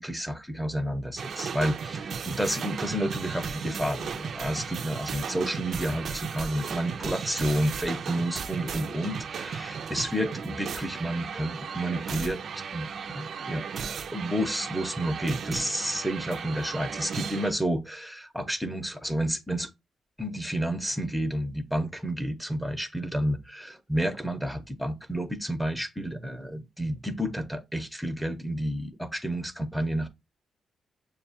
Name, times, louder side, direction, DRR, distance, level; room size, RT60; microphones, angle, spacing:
voice 1, 0.0-12.4 12.7-13.6 14.1-19.7 20.2-30.1, equal, ahead, 0.6 m, -30 dB
sound 1, 1.2-17.5, right 6 dB, 60° right, 0.4 m, -36 dB
6.7 x 2.3 x 2.6 m
cardioid pair, 100°, 0 cm